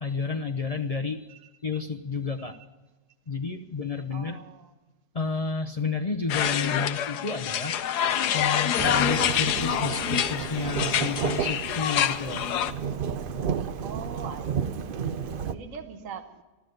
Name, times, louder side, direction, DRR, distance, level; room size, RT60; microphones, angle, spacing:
voice 1, 0.0-1.3 1.6-2.5 3.3-4.4 5.1-7.8 8.3-12.4, left 4 dB, 45° left, 4 dB, 0.5 m, -31 dB
voice 2, 1.3-1.8 2.4-2.5 4.1-4.7 13.3-16.4, right 6 dB, 55° right, 6 dB, 1.3 m, -43 dB
sound 1, 6.3-12.7, left 10 dB, 75° left, 1.3 m, -26 dB
Thunderstorm / Rain, 8.8-15.5, right 7 dB, 70° right, 0.5 m, -32 dB
14.0 x 13.0 x 7.8 m, 1.2 s
omnidirectional pair, 1.8 m